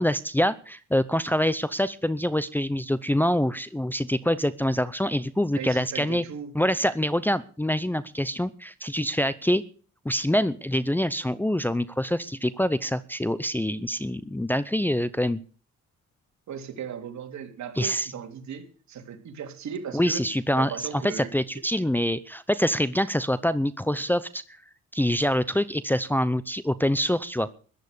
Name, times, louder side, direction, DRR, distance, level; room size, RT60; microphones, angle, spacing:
voice 1, 0.0-6.2 6.5-9.6 10.0-15.4 17.8-18.1 19.9-20.7 21.0-24.4 24.9-27.5, equal, 5° left, 14 dB, 0.7 m, -25 dB
voice 2, 5.6-6.5 16.5-20.3 20.5-21.3, right 7 dB, 65° right, 4 dB, 3.2 m, -37 dB
14.5 x 11.0 x 6.8 m, 0.41 s
cardioid pair, 90°, 30 cm